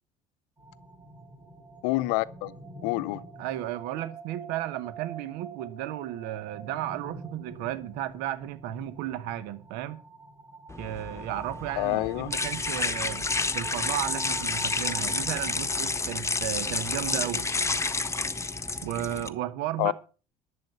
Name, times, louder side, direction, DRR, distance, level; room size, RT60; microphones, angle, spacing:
sound 1, 0.6-19.3, right 3 dB, 25° right, 7.3 m, -46 dB
voice 1, 1.8-2.5 2.8-3.2 11.8-12.3 19.8-19.9, left 20 dB, 70° left, 0.7 m, -27 dB
voice 2, 3.4-10.0 10.8-13.3 13.5-17.5 18.8-19.9, right 13 dB, 65° right, 1.1 m, -34 dB
sound 2, 10.7-19.3, left 3 dB, 15° left, 1.1 m, -30 dB
11.5 x 7.8 x 6.9 m
hypercardioid pair, 65°, 18 cm